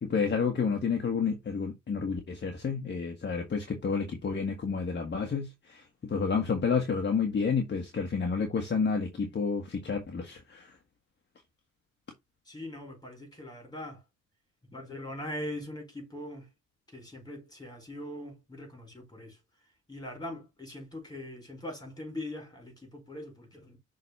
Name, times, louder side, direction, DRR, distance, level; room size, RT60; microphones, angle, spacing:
voice 1, 0.0-10.7, left 5 dB, 35° left, 1.6 m, -30 dB
voice 2, 12.4-14.0 14.7-16.5 16.9-19.4 19.9-23.8, left 1 dB, 15° left, 4.9 m, -41 dB
6.5 x 3.9 x 4.2 m
cardioid pair, 90°, 30 cm